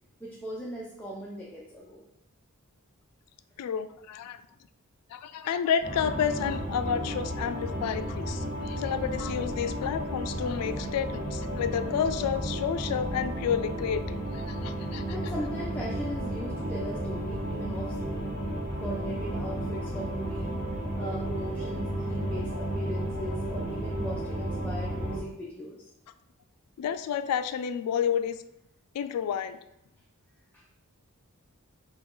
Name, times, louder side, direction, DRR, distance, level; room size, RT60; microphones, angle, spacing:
voice 1, 0.2-2.0 14.8-18.3 18.8-20.6 20.9-25.9 30.5-30.6, equal, 5° left, -5 dB, 0.5 m, -39 dB
voice 2, 3.6-4.4 5.1-15.0 26.8-28.4 28.9-29.6, left 8 dB, 80° left, 11 dB, 0.3 m, -30 dB
sound 1, 5.8-25.2, right 1 dB, 35° left, 1.5 m, -33 dB
4.9 x 2.3 x 3.8 m, 0.81 s
head